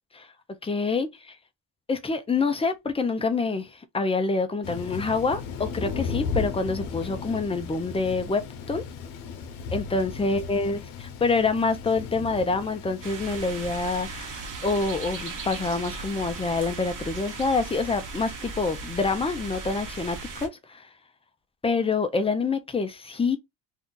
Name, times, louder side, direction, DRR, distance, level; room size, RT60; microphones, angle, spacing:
voice 1, 0.6-1.4 1.9-8.8 9.7-20.9 21.6-23.4, left 4 dB, 15° left, 0.5 m, -27 dB
Thunder, 4.6-13.7, left 5 dB, 85° left, 0.8 m, -35 dB
sound 1, 13.0-20.5, right 3 dB, 40° right, 1.1 m, -37 dB
2.7 x 2.3 x 3.7 m
cardioid pair, 105°, 47 cm